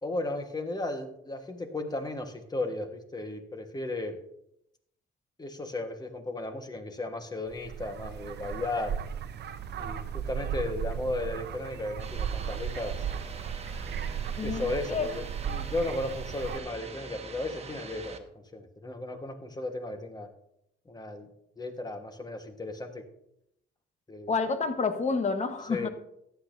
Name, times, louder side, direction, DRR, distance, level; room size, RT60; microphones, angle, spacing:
voice 1, 0.0-4.2 5.4-9.0 9.8-13.0 14.4-20.3 20.8-21.3 21.6-23.1 24.1-24.4 25.7-25.9, left 2 dB, 20° left, 6 dB, 1.4 m, -35 dB
sound 1, 7.5-16.6, right 8 dB, 55° right, 0.7 m, -36 dB
sound 2, 12.0-18.2, right 4 dB, 30° right, 1.2 m, -44 dB
voice 2, 14.4-15.1 24.3-25.9, left 4 dB, 35° left, 8 dB, 1.2 m, -29 dB
14.5 x 10.5 x 2.7 m, 0.79 s
cardioid pair, 90°, 20 cm